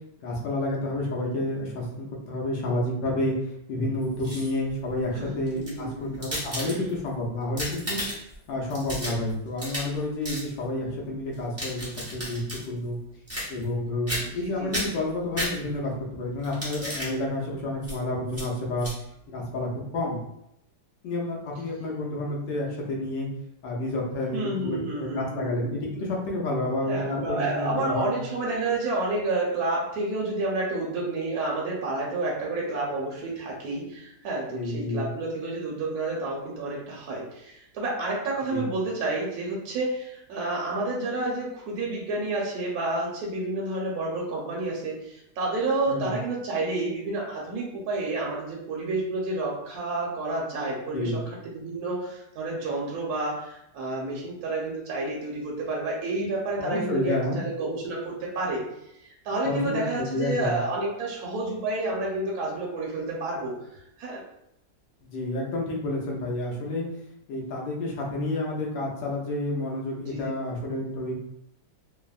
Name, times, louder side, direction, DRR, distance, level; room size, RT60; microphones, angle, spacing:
voice 1, 0.2-3.3 3.7-8.0 8.5-13.0 13.5-18.9 19.3-20.2 21.0-23.3 23.6-28.2 34.5-35.1 38.5-38.7 45.9-46.1 50.9-51.2 56.6-57.4 59.4-60.6 65.0-66.9 67.3-71.1, left 1 dB, 80° left, -2 dB, 1.4 m, -30 dB
sound 1, 4.0-4.7 5.5-7.1 7.4-8.4 8.7-10.0 10.2-10.5 11.3-12.6 13.3-13.8 14.1-14.4 14.7-15.9 16.4-17.1 17.8-18.0 18.3-18.5 18.8-18.9, equal, 20° right, 0.3 m, -33 dB
voice 2, 5.1-6.2 6.6-6.8 14.3-14.9 24.3-25.5 26.9-58.6 59.0-64.2 70.1-70.4, right 2 dB, 65° right, -3 dB, 1.1 m, -30 dB
3.4 x 2.0 x 2.3 m, 0.80 s
omnidirectional pair, 1.9 m